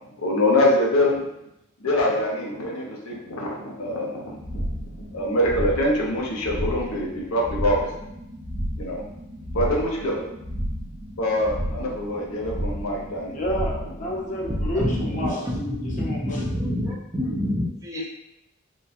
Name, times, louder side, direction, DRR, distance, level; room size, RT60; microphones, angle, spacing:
voice 1, 0.2-1.3 1.8-4.6 5.1-7.8 8.8-9.0 9.5-10.2 11.2-13.3, left 1 dB, 80° left, -2 dB, 0.7 m, -24 dB
sound 1, 4.3-16.1, equal, 65° right, 0.9 m, -33 dB
voice 2, 13.3-15.6 15.8-16.5, equal, 35° left, -4 dB, 0.8 m, -30 dB
voice 3, 14.8-18.1, left 1 dB, 15° right, -4 dB, 0.5 m, -27 dB
3.9 x 2.2 x 2.6 m, 0.84 s
head